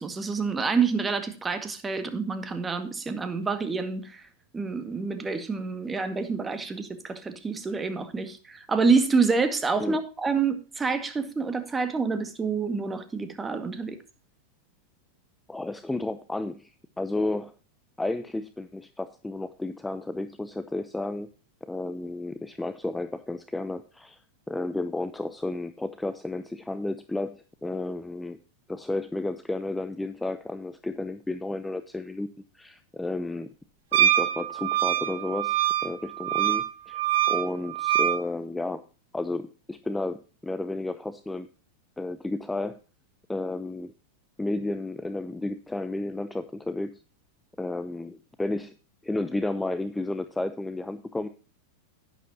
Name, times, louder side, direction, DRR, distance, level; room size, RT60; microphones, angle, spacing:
voice 1, 0.0-4.3 4.5-14.0, right 4 dB, 15° right, 1.9 m, -27 dB
voice 2, 15.5-17.5 18.0-21.3 21.6-24.2 24.5-28.4 28.7-32.3 32.5-33.5 33.9-37.0 37.3-38.8 39.1-41.5 42.0-42.8 43.3-43.9 44.4-47.0 47.6-48.7 49.0-51.3, left 2 dB, 5° left, 0.7 m, -32 dB
Wind instrument woodwind instrument, 33.9-38.2, right 12 dB, 65° right, 1.4 m, -24 dB
11.0 x 10.0 x 2.8 m
hypercardioid pair, 95°, 0 cm